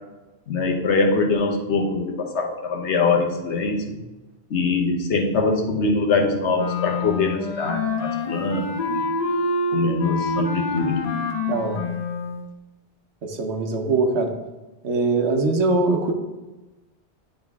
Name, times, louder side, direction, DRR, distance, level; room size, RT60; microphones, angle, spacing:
voice 1, 0.5-4.0 4.5-9.1 9.7-11.1, left 3 dB, 75° left, 3 dB, 1.2 m, -23 dB
Wind instrument woodwind instrument, 6.5-12.4, left 2 dB, 40° left, 0.9 m, -26 dB
voice 2, 11.5-11.8 13.2-14.3 14.8-16.1, right 3 dB, 70° right, 3 dB, 1.2 m, -22 dB
10.0 x 3.9 x 3.5 m, 1.1 s
omnidirectional pair, 1.2 m